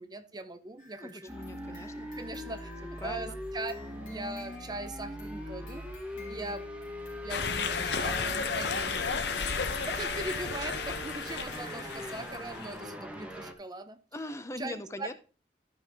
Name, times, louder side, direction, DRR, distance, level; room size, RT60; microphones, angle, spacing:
voice 1, 0.0-1.4 1.7-2.7 3.0-3.7 4.1-5.9 6.3-6.7 7.2-9.2 9.9-14.0 14.6-15.1, right 2 dB, 25° right, 10 dB, 0.7 m, -40 dB
sound 1, 0.8-13.4, left 1 dB, 50° left, 3.1 m, -54 dB
voice 2, 1.0-2.1 3.0-3.4 6.2-6.4 14.1-15.1, left 1 dB, 15° left, 10 dB, 0.6 m, -41 dB
sound 2, 1.3-13.5, equal, 5° right, 1.1 m, -41 dB
sound 3, 7.3-12.7, left 5 dB, 70° left, 0.7 m, -33 dB
12.5 x 5.3 x 3.5 m, 0.36 s
head